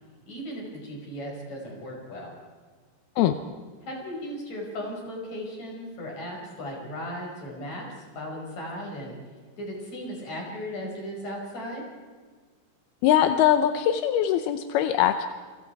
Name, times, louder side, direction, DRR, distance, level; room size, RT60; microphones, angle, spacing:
voice 1, 0.3-2.3 3.8-9.2 9.6-11.8, equal, 45° left, 0 dB, 6.9 m, -36 dB
voice 2, 13.0-15.3, left 10 dB, 85° left, 9 dB, 2.8 m, -22 dB
28.5 x 25.0 x 4.7 m, 1.5 s
omnidirectional pair, 4.3 m